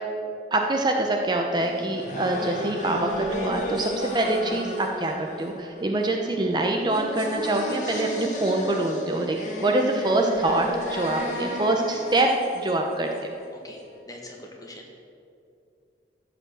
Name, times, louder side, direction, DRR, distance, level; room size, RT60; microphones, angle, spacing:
voice 1, 0.5-12.3 12.6-13.3, right 2 dB, 25° right, 2 dB, 0.7 m, -25 dB
sound 1, 1.6-13.5, left 1 dB, 45° left, 1.9 m, -34 dB
voice 2, 14.1-14.9, left 1 dB, 20° left, 0 dB, 1.5 m, -42 dB
14.0 x 5.1 x 7.8 m, 2.5 s
head